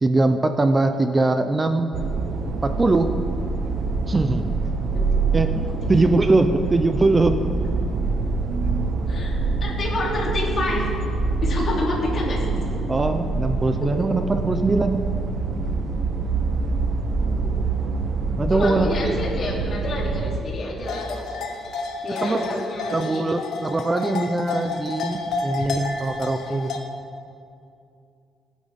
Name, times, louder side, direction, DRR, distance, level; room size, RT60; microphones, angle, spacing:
voice 1, 0.0-1.9 2.6-3.2 4.1-4.5 5.3-7.4 12.9-15.1 18.4-19.2 22.1-22.6 22.9-26.7, right 2 dB, 20° right, 8 dB, 0.6 m, -22 dB
sound 1, 1.9-20.4, right 4 dB, 60° right, 1.0 m, -25 dB
voice 2, 9.6-10.9 11.4-12.4 13.8-14.1 17.3-17.5 18.5-21.3 22.0-23.2, left 2 dB, 45° left, -4 dB, 2.9 m, -28 dB
sound 2, 20.8-26.8, left 4 dB, 70° left, 1.2 m, -30 dB
19.5 x 9.3 x 3.6 m, 2.5 s
cardioid pair, 115°, 0 cm